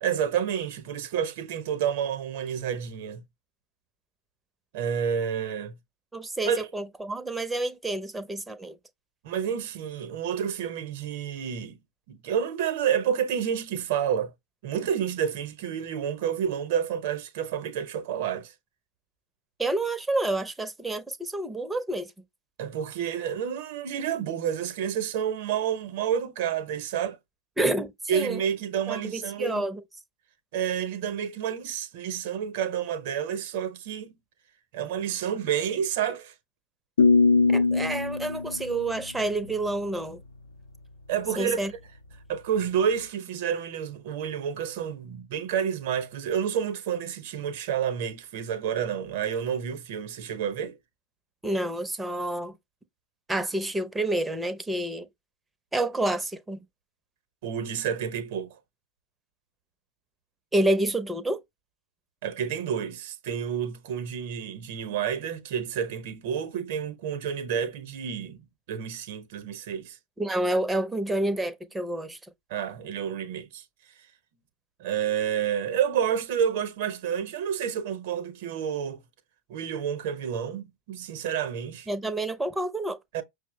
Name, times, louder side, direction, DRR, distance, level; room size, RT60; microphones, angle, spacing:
voice 1, 0.0-3.2 4.7-5.7 6.5-6.6 9.2-11.8 12.1-14.3 14.6-18.5 22.6-27.2 28.1-29.6 30.5-34.1 34.7-36.3 41.1-41.6 42.3-50.8 57.4-58.6 62.2-70.0 72.5-73.6 74.8-79.0 79.5-81.9 83.1-83.2, right 8 dB, 50° right, 0.7 m, -29 dB
voice 2, 6.1-8.8 19.6-22.1 27.6-28.4 28.9-29.8 37.5-40.2 41.4-41.7 51.4-52.6 53.3-55.1 55.7-56.6 60.5-61.4 70.2-72.2 81.9-83.0, right 1 dB, 10° right, 0.6 m, -28 dB
sound 1, 37.0-39.9, left 4 dB, 70° left, 0.5 m, -23 dB
5.9 x 2.0 x 3.0 m
figure-of-eight pair, 90°, 0 cm